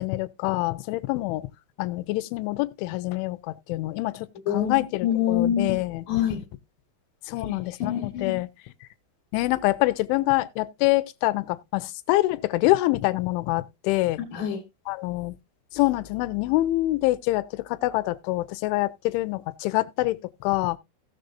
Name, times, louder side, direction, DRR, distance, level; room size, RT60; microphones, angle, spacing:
voice 1, 0.0-1.5 1.8-4.3 4.5-6.0 7.3-8.5 9.3-14.2 14.9-15.4 15.7-20.8, left 19 dB, 80° left, 2.9 m, -25 dB
voice 2, 4.5-6.4 7.4-8.4 14.2-14.6, left 9 dB, 65° left, 2.4 m, -27 dB
17.0 x 6.6 x 2.5 m
omnidirectional pair, 5.6 m